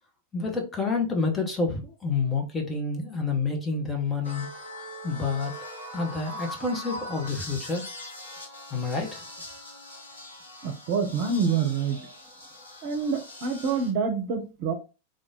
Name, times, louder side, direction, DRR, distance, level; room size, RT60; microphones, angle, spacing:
voice 1, 0.3-4.5 5.0-5.5 5.9-7.9 8.7-9.3, left 4 dB, 15° left, 1.0 m, -28 dB
sound 1, 4.2-13.9, left 1 dB, 70° left, 1.2 m, -41 dB
voice 2, 10.6-12.0 12.8-14.7, right 5 dB, 45° right, 0.8 m, -27 dB
3.5 x 2.5 x 3.7 m
figure-of-eight pair, 90°, 0 cm